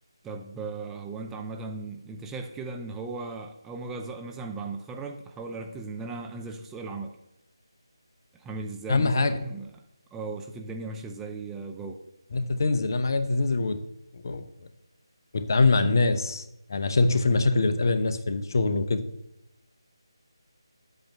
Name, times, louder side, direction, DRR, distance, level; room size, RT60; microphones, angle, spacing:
voice 1, 0.2-7.2 8.3-9.7 10.1-12.0, right 3 dB, 5° right, 3 dB, 0.4 m, -37 dB
voice 2, 8.9-9.3 12.3-13.8 14.1-14.4 15.3-16.4 16.7-19.0, left 3 dB, 45° left, 9 dB, 0.8 m, -23 dB
10.0 x 8.0 x 3.4 m, 0.88 s
figure-of-eight pair, 155°, 3 cm